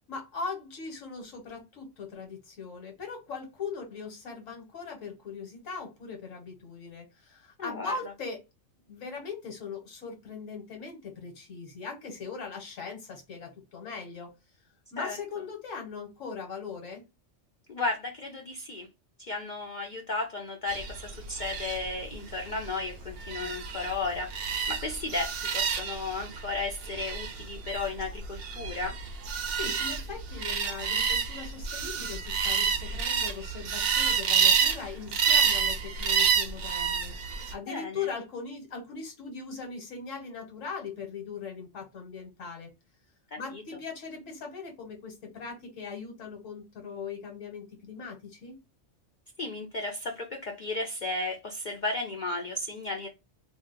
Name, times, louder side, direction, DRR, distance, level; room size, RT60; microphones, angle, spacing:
voice 1, 0.1-8.4 8.9-14.3 14.9-17.0 29.5-42.7 43.4-48.6, left 5 dB, 85° left, 1.3 m, -40 dB
voice 2, 7.6-7.9 15.0-15.2 17.7-18.9 19.2-29.0 37.7-38.1 43.3-43.6 49.4-53.1, left 3 dB, 60° left, 0.5 m, -34 dB
sound 1, 20.7-37.5, right 6 dB, 60° right, 0.7 m, -29 dB
2.7 x 2.0 x 3.7 m
omnidirectional pair, 1.3 m